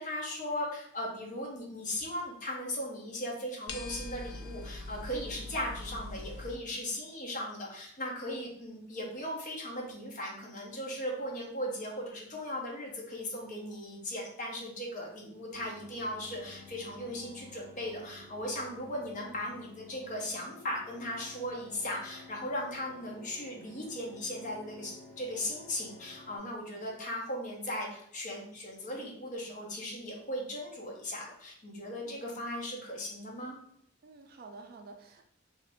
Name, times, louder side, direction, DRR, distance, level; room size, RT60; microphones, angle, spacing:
voice 1, 0.0-33.6, left 1 dB, 35° left, -1 dB, 0.7 m, -38 dB
sound 1, 3.7-6.6, left 2 dB, 90° left, 0.4 m, -42 dB
sound 2, 15.5-26.4, left 3 dB, 15° left, 1.0 m, -53 dB
voice 2, 34.0-35.2, right 3 dB, 45° right, 3 dB, 0.3 m, -50 dB
2.8 x 2.5 x 3.4 m, 0.68 s
head